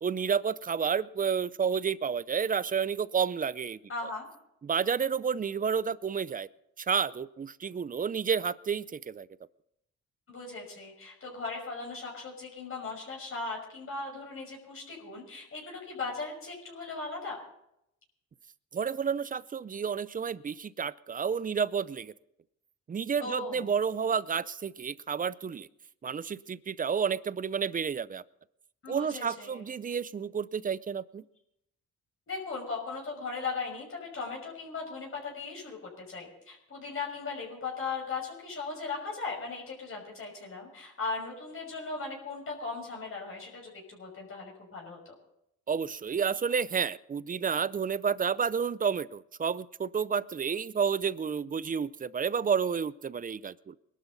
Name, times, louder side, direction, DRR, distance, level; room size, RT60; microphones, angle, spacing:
voice 1, 0.0-3.8 4.6-6.5 6.8-9.3 18.7-22.1 22.9-25.7 26.0-28.2 28.9-31.2 45.7-53.8, right 6 dB, 30° right, 19 dB, 0.5 m, -30 dB
voice 2, 3.9-4.3 10.3-17.4 23.2-23.7 28.8-29.7 32.3-45.1, left 4 dB, 45° left, -1 dB, 5.9 m, -38 dB
21.5 x 12.5 x 4.1 m, 0.79 s
cardioid pair, 90°, 30 cm